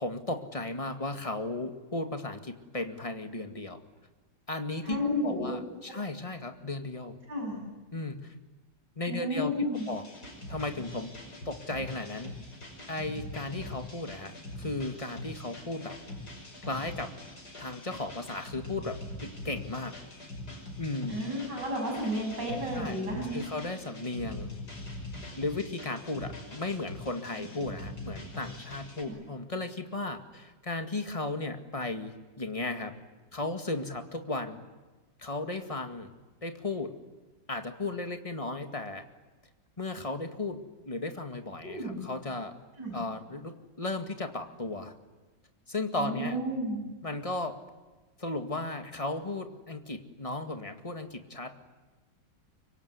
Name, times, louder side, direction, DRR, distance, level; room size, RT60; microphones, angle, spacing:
voice 1, 0.0-3.8 4.5-5.0 5.2-7.2 7.9-8.3 9.0-9.5 9.9-10.0 10.5-11.1 11.5-12.3 12.9-16.0 16.7-17.1 17.6-19.0 19.2-19.9 20.8-21.2 22.7-23.0 23.3-24.5 25.4-32.9 33.3-34.6 35.2-36.1 36.4-36.9 37.5-39.0 39.8-40.6 40.8-42.5 42.9-44.9 45.7-46.4 47.0-47.6 48.2-51.7, left 2 dB, 20° left, 6 dB, 2.0 m, -35 dB
voice 2, 4.8-5.5 7.3-7.6 9.1-9.9 21.1-23.4 27.4-27.5 29.0-29.2 41.6-42.0 42.8-43.0 46.0-46.8, equal, 65° right, 1 dB, 8.7 m, -32 dB
sound 1, 9.7-29.0, left 1 dB, 55° left, 6.4 m, -43 dB
25.0 x 24.0 x 9.8 m, 1.2 s
omnidirectional pair, 2.0 m